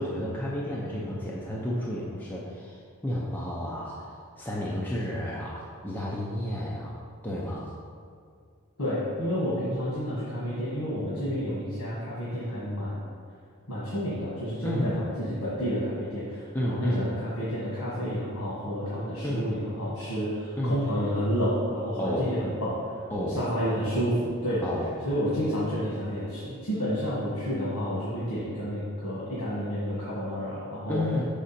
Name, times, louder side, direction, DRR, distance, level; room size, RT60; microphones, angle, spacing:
voice 1, 0.0-7.0 7.2-7.7 14.6-15.0 16.5-17.1 19.2-19.5 20.6-20.8 22.0-22.3 23.1-23.4 24.6-24.9 30.9-31.2, left 1 dB, 10° left, -5 dB, 0.5 m, -31 dB
voice 2, 8.8-13.1 13.7-24.6 25.0-31.0, equal, 85° left, -8 dB, 1.6 m, -30 dB
6.0 x 5.0 x 4.2 m, 2.2 s
head